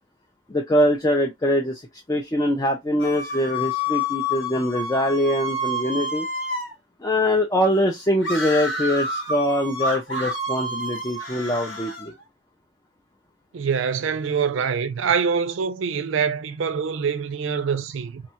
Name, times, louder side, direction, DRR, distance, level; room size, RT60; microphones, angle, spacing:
voice 1, 0.5-1.8 2.1-6.3 7.0-12.1, left 1 dB, 15° left, 0.4 m, -23 dB
sound 1, 3.0-6.7 8.2-12.1, left 1 dB, 65° left, 1.1 m, -29 dB
voice 2, 13.5-18.2, right 6 dB, 75° right, 0.4 m, -24 dB
2.7 x 2.2 x 2.8 m
head